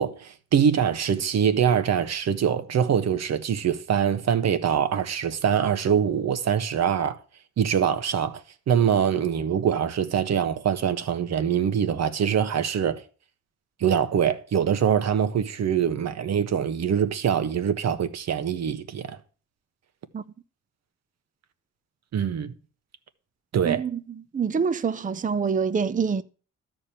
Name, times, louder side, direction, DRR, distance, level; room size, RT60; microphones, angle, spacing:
voice 1, 0.0-7.2 7.6-13.0 13.8-19.2 22.1-22.5 23.5-23.8, right 8 dB, 60° right, 1.4 m, -24 dB
voice 2, 23.6-24.0 24.3-26.2, right 6 dB, 25° right, 0.7 m, -25 dB
13.0 x 5.2 x 8.9 m
cardioid pair, 90°, 30 cm